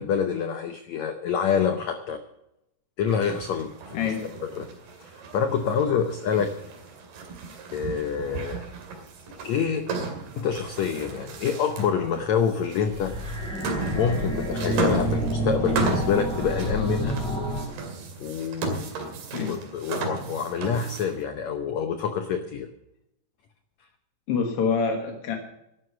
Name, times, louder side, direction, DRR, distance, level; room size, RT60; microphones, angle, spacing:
voice 1, 0.0-2.2 3.0-4.1 4.6-4.7 5.0-6.5 7.7-8.6 9.4-13.1 13.9-17.2 18.2-18.8 19.4-22.7, left 7 dB, 85° left, 8 dB, 1.5 m, -27 dB
sound 1, 3.1-21.2, right 3 dB, 80° right, 4.4 m, -35 dB
voice 2, 3.9-4.3 7.4-7.5 19.3-19.6 24.3-25.4, left 5 dB, 55° left, 3 dB, 1.7 m, -26 dB
sound 2, 12.7-17.7, right 1 dB, ahead, 5.1 m, -29 dB
12.5 x 11.0 x 6.8 m, 0.84 s
omnidirectional pair, 4.4 m